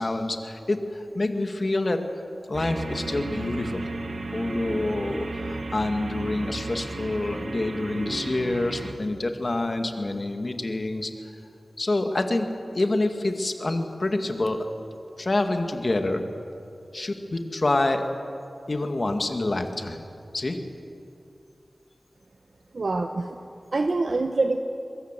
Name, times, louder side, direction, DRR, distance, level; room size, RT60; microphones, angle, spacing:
voice 1, 0.0-2.0 2.5-3.9 4.3-11.1 11.8-12.5 12.7-14.6 15.2-16.2 16.9-18.0 18.7-20.0 20.3-20.6, left 2 dB, 45° left, 5 dB, 2.0 m, -27 dB
sound 1, 2.5-8.9, right 2 dB, 90° right, 1.8 m, -34 dB
voice 2, 22.7-23.3 23.7-24.6, right 3 dB, 65° right, 5 dB, 1.1 m, -25 dB
23.0 x 22.5 x 7.6 m, 2.6 s
wide cardioid pair, 75°, 0 cm